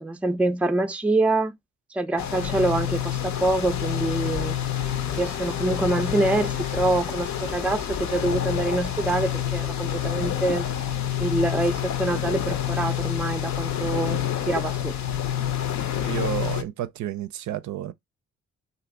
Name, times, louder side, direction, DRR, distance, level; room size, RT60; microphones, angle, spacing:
voice 1, 0.0-1.5 1.9-4.6 5.1-10.7 11.2-14.9, right 2 dB, 5° right, 0.4 m, -25 dB
sound 1, 2.2-16.6, left 10 dB, 65° left, 0.6 m, -28 dB
sound 2, 4.1-10.4, left 10 dB, 90° left, 1.0 m, -41 dB
voice 2, 16.0-17.9, right 12 dB, 65° right, 0.5 m, -31 dB
2.5 x 2.5 x 3.7 m
supercardioid pair, 65°, 31 cm